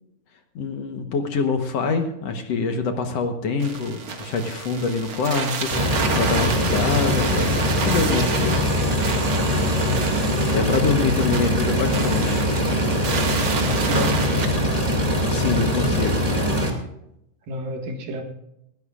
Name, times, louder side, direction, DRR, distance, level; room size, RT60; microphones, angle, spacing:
voice 1, 0.6-8.7 10.5-12.5 15.3-16.4, left 4 dB, 60° left, 5 dB, 1.9 m, -25 dB
sound 1, 3.6-14.5, right 5 dB, 45° right, 2.1 m, -29 dB
sound 2, 5.7-16.7, equal, 15° right, 1.8 m, -22 dB
voice 2, 9.8-10.2 13.6-14.7 17.5-18.2, equal, 85° right, 3 dB, 3.5 m, -30 dB
19.5 x 16.0 x 2.4 m, 0.81 s
omnidirectional pair, 3.8 m